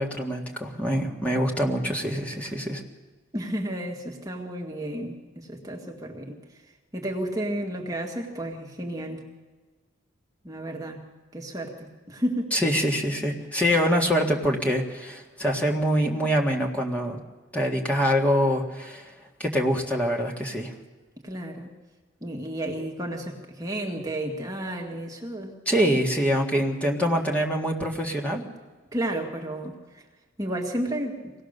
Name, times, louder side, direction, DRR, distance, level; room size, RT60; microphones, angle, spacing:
voice 1, 0.0-2.8 12.5-17.2 17.5-19.1 19.4-20.7 25.7-28.4, equal, 5° left, -1 dB, 1.8 m, -25 dB
voice 2, 3.3-6.4 6.9-9.2 10.4-11.0 11.3-12.5 21.2-21.7 22.2-25.5 28.9-29.8 30.4-31.3, right 1 dB, 15° right, 0 dB, 1.7 m, -32 dB
24.0 x 18.0 x 6.7 m, 1.3 s
head